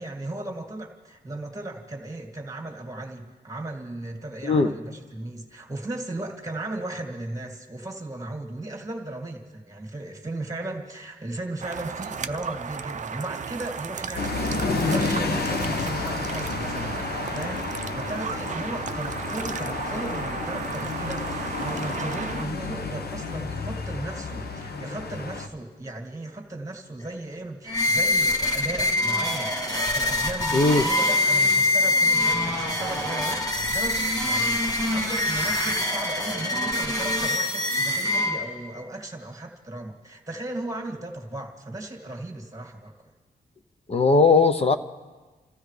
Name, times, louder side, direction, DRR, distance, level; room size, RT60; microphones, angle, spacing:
voice 1, 0.0-43.1, right 2 dB, 20° right, 2.1 m, -36 dB
voice 2, 4.4-4.7 30.5-30.9 43.9-44.8, left 3 dB, 35° left, 0.8 m, -18 dB
sound 1, 11.6-22.4, right 6 dB, 45° right, 0.5 m, -35 dB
sound 2, 14.1-25.5, left 3 dB, 70° left, 1.1 m, -30 dB
sound 3, 27.7-38.7, left 2 dB, 20° left, 1.5 m, -24 dB
28.0 x 15.5 x 3.3 m
wide cardioid pair, 150°, 17 cm